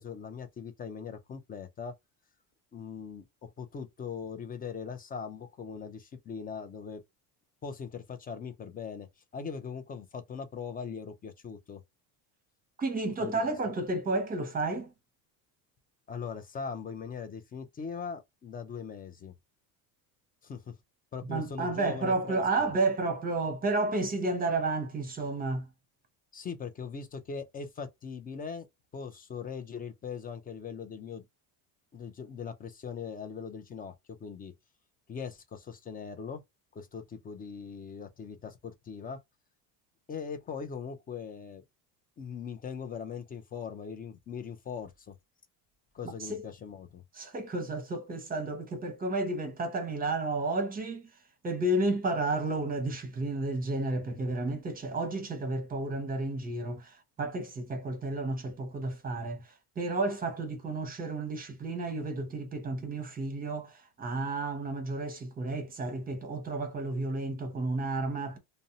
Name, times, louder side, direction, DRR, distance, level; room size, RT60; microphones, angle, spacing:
voice 1, 0.0-1.9 2.7-7.0 7.6-9.1 9.3-11.8 13.2-13.5 16.1-19.3 20.4-20.6 21.1-22.7 26.3-28.7 28.9-31.2 31.9-33.9 34.2-34.5 35.1-36.4 36.8-39.2 40.1-41.6 42.2-45.1 45.9-47.0, left 6 dB, 20° left, 0.3 m, -40 dB
voice 2, 12.8-14.9 21.3-25.7 46.3-46.5 47.1-51.1 51.4-59.4 59.8-68.4, right 2 dB, 20° right, 0.8 m, -31 dB
2.6 x 2.0 x 2.6 m
supercardioid pair, 115°, 44 cm